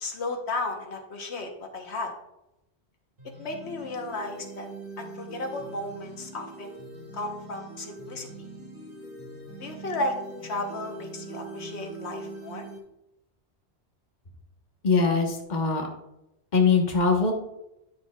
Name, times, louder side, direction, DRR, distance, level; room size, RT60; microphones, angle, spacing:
voice 1, 0.0-2.1 3.4-4.7 5.0-6.8 7.1-8.3 9.6-10.2 10.4-12.7, left 2 dB, 85° left, 3 dB, 1.3 m, -34 dB
sound 1, 3.2-12.8, right 2 dB, 55° right, 1.9 m, -42 dB
voice 2, 14.8-15.9 16.5-17.3, left 4 dB, 45° left, 2 dB, 1.3 m, -22 dB
10.5 x 7.0 x 2.3 m, 0.86 s
omnidirectional pair, 1.1 m